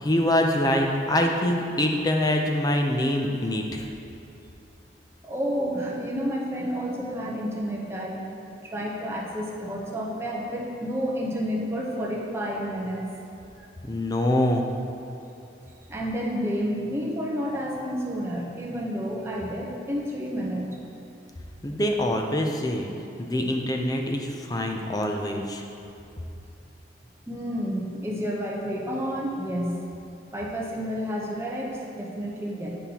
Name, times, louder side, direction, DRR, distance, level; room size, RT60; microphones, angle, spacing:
voice 1, 0.0-3.9 13.8-14.7 21.6-22.9 23.2-25.6, left 1 dB, 20° left, 2 dB, 0.5 m, -24 dB
voice 2, 5.2-13.1 13.6-13.7 15.9-20.7 27.3-29.9 30.3-32.7, equal, 15° right, -3 dB, 0.8 m, -30 dB
10.0 x 5.4 x 2.9 m, 2.8 s
head